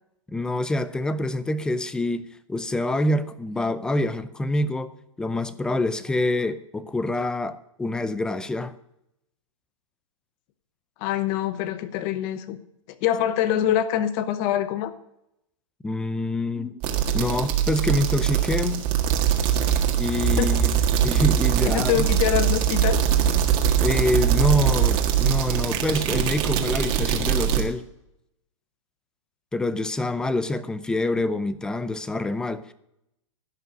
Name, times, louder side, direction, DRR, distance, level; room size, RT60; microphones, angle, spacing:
voice 1, 0.3-2.2 2.5-4.9 5.2-8.7 15.8-16.8 17.1-18.8 20.0-22.0 23.8-27.8 29.5-32.7, left 1 dB, 5° left, 14 dB, 0.5 m, -26 dB
voice 2, 11.0-12.6 13.0-14.9 20.4-20.6 21.7-23.0, left 11 dB, 35° left, 12 dB, 0.8 m, -24 dB
sound 1, 16.8-27.6, right 9 dB, 30° right, 1.7 m, -22 dB
15.5 x 5.6 x 6.3 m, 0.80 s
hypercardioid pair, 135°, 17 cm